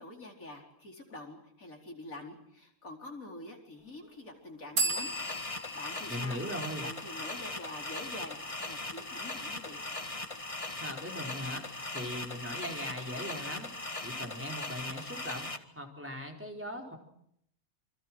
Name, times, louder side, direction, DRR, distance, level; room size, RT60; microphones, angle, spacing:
voice 1, 0.0-5.1 5.5-6.4 6.8-9.8, left 2 dB, 65° left, 2 dB, 4.9 m, -46 dB
sound 1, 4.8-8.3, right 3 dB, 90° right, 3.7 m, -37 dB
sound 2, 4.9-15.6, left 2 dB, 25° left, 1.7 m, -39 dB
voice 2, 6.1-6.9 10.8-11.6 11.9-13.7 14.0-15.5 15.8-17.0, left 1 dB, 10° right, 1 dB, 4.6 m, -39 dB
28.0 x 25.5 x 6.2 m, 0.71 s
omnidirectional pair, 1.5 m